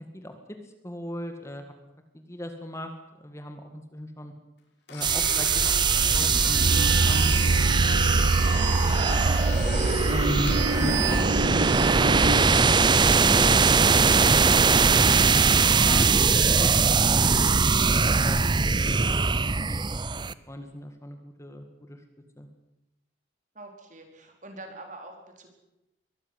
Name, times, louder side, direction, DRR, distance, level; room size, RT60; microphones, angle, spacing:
voice 1, 0.1-0.6 0.8-1.7 2.1-2.9 3.2-4.3 4.9-9.4 10.1-11.3 11.6-12.7 13.0-14.6 15.2-15.6 15.8-17.5 18.0-19.0 19.3-22.0 22.4-22.5, equal, 15° left, 6 dB, 1.9 m, -38 dB
Domestic sounds home sounds, 4.9-11.9, left 3 dB, 60° left, 6.2 m, -36 dB
sound 1, 5.0-20.3, right 4 dB, 25° right, 0.7 m, -21 dB
sound 2, 6.5-12.4, right 3 dB, 70° right, 0.7 m, -26 dB
voice 2, 23.5-25.5, right 2 dB, 40° right, 3 dB, 4.6 m, -44 dB
23.0 x 14.0 x 9.8 m, 0.91 s
head